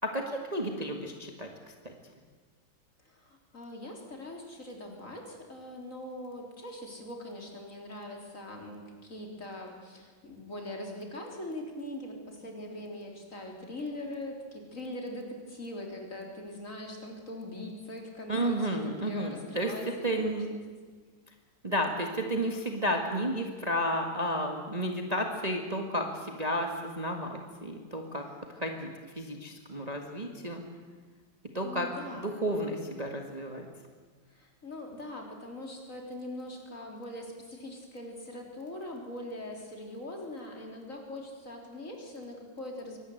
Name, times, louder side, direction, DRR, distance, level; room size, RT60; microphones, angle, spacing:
voice 1, 0.0-1.5 1.8-1.9 18.3-19.7 20.0-20.5 21.6-28.2 28.5-28.9 29.1-30.6 31.5-31.9 32.4-33.7, equal, 20° right, 3 dB, 1.7 m, -32 dB
voice 2, 3.0-20.6 31.6-32.6 34.3-43.0, left 1 dB, 40° left, 1 dB, 4.0 m, -42 dB
24.0 x 18.5 x 8.0 m, 1.5 s
omnidirectional pair, 2.2 m